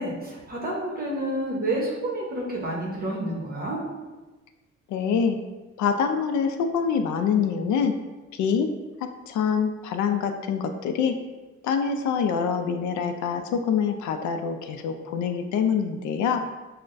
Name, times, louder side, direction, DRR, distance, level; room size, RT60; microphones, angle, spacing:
voice 1, 0.0-3.8, right 1 dB, 30° right, -4 dB, 0.9 m, -29 dB
voice 2, 4.9-5.4 5.8-7.9 8.3-8.7 9.3-11.2 11.6-16.4, left 6 dB, 70° left, 6 dB, 0.4 m, -25 dB
6.0 x 2.1 x 2.6 m, 1.2 s
cardioid pair, 90°, 30 cm